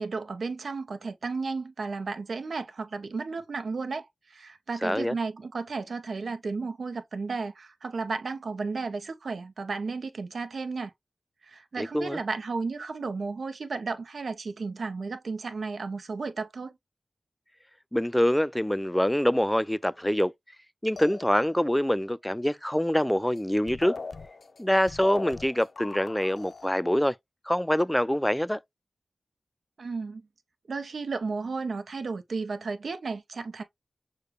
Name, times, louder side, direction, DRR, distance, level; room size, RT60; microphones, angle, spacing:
voice 1, 0.0-10.9 11.5-16.7 29.8-30.2 30.7-33.6, right 4 dB, 80° right, 0.7 m, -33 dB
voice 2, 4.8-5.2 11.8-12.2 17.9-20.3 20.8-24.0 24.6-27.1 27.5-28.6, equal, 10° left, 0.3 m, -25 dB
sound 1, 21.0-21.8 23.4-23.5 23.7-26.7, left 4 dB, 75° left, 0.5 m, -40 dB
6.5 x 2.2 x 3.1 m
cardioid pair, 45°, 0 cm